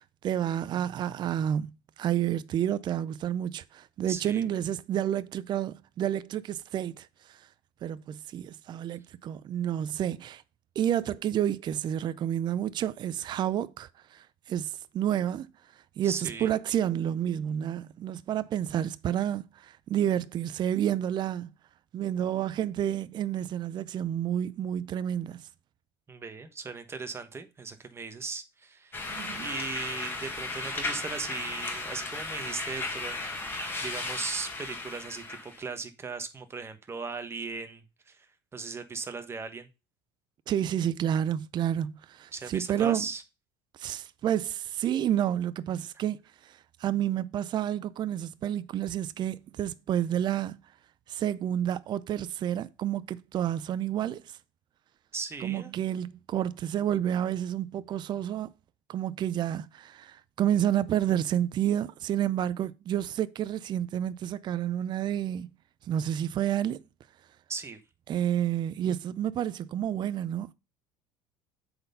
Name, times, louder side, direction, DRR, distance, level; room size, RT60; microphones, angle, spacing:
voice 1, 0.0-7.5 7.8-10.4 10.8-15.5 16.0-21.5 21.9-25.5 29.1-29.5 40.5-43.1 43.8-50.6 51.1-54.4 55.4-58.5 58.9-65.5 65.8-66.8 68.1-70.5, right 10 dB, 40° right, 0.5 m, -30 dB
voice 2, 4.1-4.4 16.0-16.5 26.1-29.0 29.3-33.3 33.8-38.3 38.5-39.7 42.3-43.2 55.1-55.7 67.5-67.8, right 4 dB, 20° right, 1.3 m, -38 dB
sound 1, 28.9-35.6, left 2 dB, 20° left, 1.8 m, -35 dB
7.8 x 4.3 x 5.4 m
supercardioid pair, 100°, 12 cm